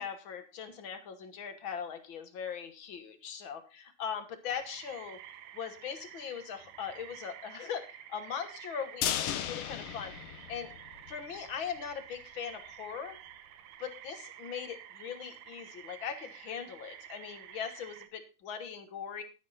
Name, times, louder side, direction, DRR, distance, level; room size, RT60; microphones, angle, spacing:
voice 1, 0.0-5.2 5.5-10.7 11.1-13.2 13.8-19.2, left 7 dB, 50° left, 8 dB, 1.6 m, -40 dB
sound 1, 4.5-18.1, right 11 dB, 75° right, 2.3 m, -50 dB
sound 2, 9.0-11.2 11.5-11.6 11.9-12.0, left 11 dB, 70° left, 1.5 m, -35 dB
12.0 x 10.0 x 4.1 m, 0.32 s
omnidirectional pair, 3.6 m